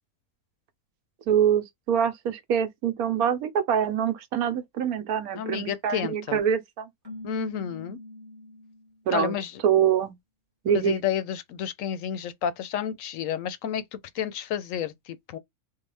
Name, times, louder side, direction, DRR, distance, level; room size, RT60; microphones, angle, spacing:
voice 1, 1.3-6.9 9.1-9.3 9.6-10.1 10.6-10.9, right 8 dB, 80° right, 1.2 m, -25 dB
voice 2, 5.3-6.4 7.2-8.0 9.1-9.6 10.8-13.8 14.1-15.4, left 9 dB, 70° left, 0.9 m, -30 dB
Keyboard (musical), 7.0-9.0, left 2 dB, 15° right, 1.0 m, -42 dB
3.7 x 2.1 x 3.2 m
omnidirectional pair, 1.5 m